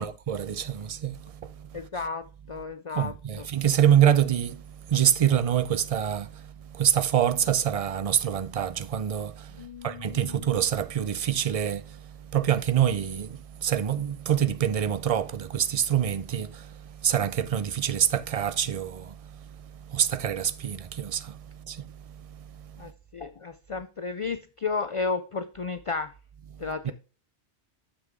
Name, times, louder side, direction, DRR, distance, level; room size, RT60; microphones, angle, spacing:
voice 1, 0.0-1.8 2.9-22.9 26.5-26.9, right 9 dB, 50° right, 0.4 m, -26 dB
voice 2, 1.7-3.5 9.6-10.5 22.8-26.1 26.6-26.9, left 4 dB, 55° left, 0.3 m, -33 dB
7.0 x 6.5 x 3.5 m
omnidirectional pair, 1.1 m